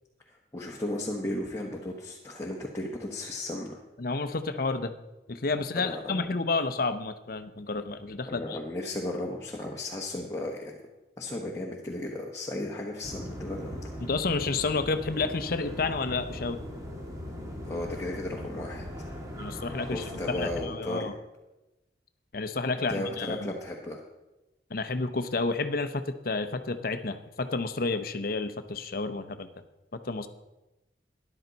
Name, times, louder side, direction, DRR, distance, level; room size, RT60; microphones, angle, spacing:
voice 1, 0.3-3.8 5.7-6.3 8.3-10.8 11.2-13.8 17.6-18.8 19.9-21.1 22.9-24.0, left 1 dB, 15° left, -3 dB, 1.2 m, -35 dB
voice 2, 4.0-4.9 5.3-8.6 14.0-16.6 19.4-21.1 22.3-23.5 24.7-29.5 30.1-30.3, left 3 dB, 55° left, 10 dB, 0.7 m, -30 dB
sound 1, 13.0-20.7, equal, 20° right, 1.7 m, -39 dB
13.5 x 11.0 x 4.0 m, 1.0 s
head